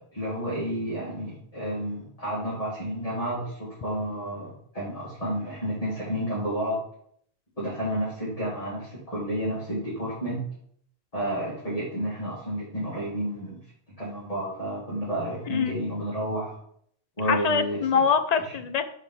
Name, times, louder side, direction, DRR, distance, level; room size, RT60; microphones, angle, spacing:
voice 1, 0.0-6.8 7.6-10.4 11.1-13.6 14.0-16.6 17.2-18.0 18.4-18.5, equal, 35° left, -9 dB, 2.3 m, -31 dB
voice 2, 17.3-18.9, left 6 dB, 50° left, 8 dB, 0.5 m, -24 dB
5.3 x 4.1 x 5.6 m, 0.65 s
omnidirectional pair, 1.1 m